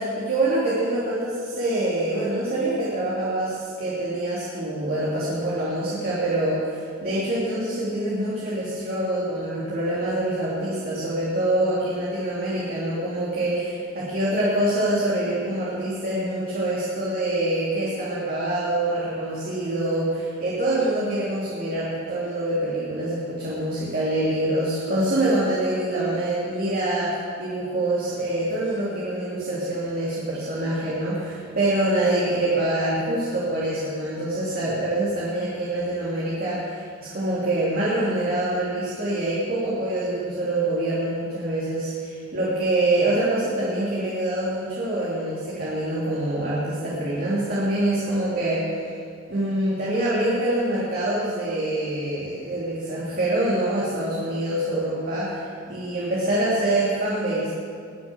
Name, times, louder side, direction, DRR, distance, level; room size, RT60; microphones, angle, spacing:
voice 1, 0.0-48.6 49.3-57.5, right 1 dB, 50° right, -8 dB, 3.1 m, -25 dB
20.5 x 7.2 x 7.0 m, 2.2 s
head